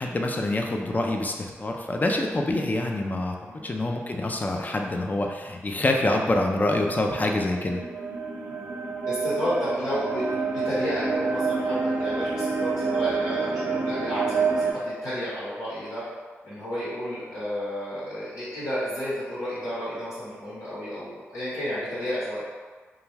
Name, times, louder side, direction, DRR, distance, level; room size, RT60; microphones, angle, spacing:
voice 1, 0.0-3.4 3.6-7.8, left 2 dB, 30° left, 2 dB, 0.4 m, -26 dB
sound 1, 6.5-14.7, right 4 dB, 80° right, 0.5 m, -28 dB
voice 2, 9.0-16.0 16.4-22.4, equal, 90° left, -11 dB, 1.1 m, -31 dB
2.3 x 2.2 x 3.2 m, 1.4 s
supercardioid pair, 40°, 5 cm